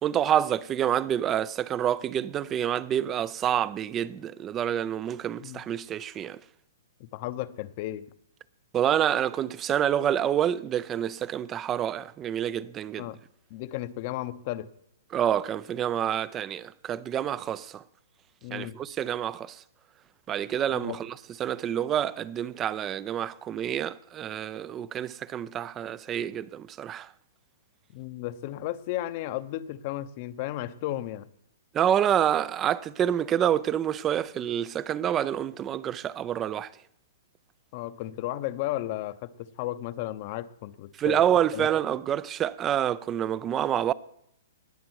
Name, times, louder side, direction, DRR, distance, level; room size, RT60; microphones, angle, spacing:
voice 1, 0.0-6.4 8.7-13.1 15.1-17.8 18.5-19.6 20.3-21.1 21.4-27.1 31.7-36.7 41.0-43.9, right 10 dB, 20° right, 0.4 m, -27 dB
voice 2, 7.0-8.1 13.0-13.2 13.5-14.7 18.4-18.8 20.7-21.0 27.9-31.3 37.7-41.7, left 14 dB, 45° left, 0.7 m, -34 dB
19.0 x 6.8 x 4.7 m
hypercardioid pair, 145°, 0 cm